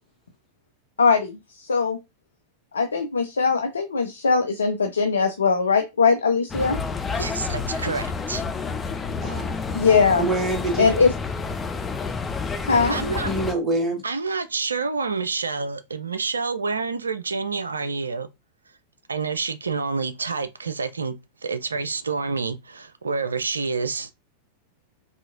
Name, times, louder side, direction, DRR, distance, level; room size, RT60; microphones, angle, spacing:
voice 1, 1.0-1.3 1.7-2.0 2.7-6.8 9.8-10.3 10.8-11.1 12.7-13.0, left 5 dB, 70° left, 0.4 m, -20 dB
sound 1, 6.5-13.5, left 4 dB, 15° left, 0.5 m, -29 dB
voice 2, 7.2-8.4 12.9-13.3 14.0-18.3 19.1-21.2 21.4-24.1, right 4 dB, 75° right, 0.4 m, -28 dB
voice 3, 9.2-9.5 10.2-10.8 13.2-14.0, right 2 dB, 20° right, 1.3 m, -25 dB
4.1 x 2.8 x 2.4 m
figure-of-eight pair, 90°, 0 cm